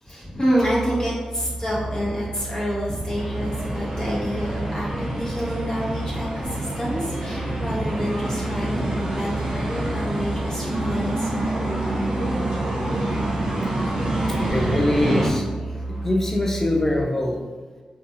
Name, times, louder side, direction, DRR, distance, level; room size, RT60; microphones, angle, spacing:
voice 1, 0.0-12.0, equal, 35° left, -7 dB, 0.8 m, -28 dB
Musical instrument, 0.6-17.0, right 2 dB, 5° right, 0.7 m, -33 dB
sound 1, 3.1-15.3, right 1 dB, 45° right, 0.6 m, -27 dB
voice 2, 14.5-15.5 16.0-17.4, left 1 dB, 20° left, 1 dB, 0.4 m, -23 dB
2.7 x 2.3 x 2.6 m, 1.3 s
wide cardioid pair, 135°, 2 cm